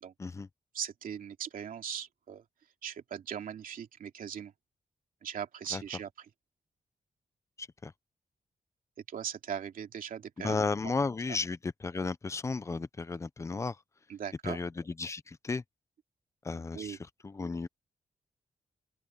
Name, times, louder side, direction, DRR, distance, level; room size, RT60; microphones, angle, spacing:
voice 1, 0.7-2.4 2.8-4.5 5.2-6.3 9.1-10.6 14.1-14.6 16.7-17.0, right 8 dB, 85° right, 2.6 m, -39 dB
voice 2, 7.6-7.9 10.4-13.8 14.4-14.7 15.0-15.6 16.4-17.0 17.2-17.7, left 4 dB, 20° left, 0.6 m, -34 dB
open air
wide cardioid pair, 175°, 14 cm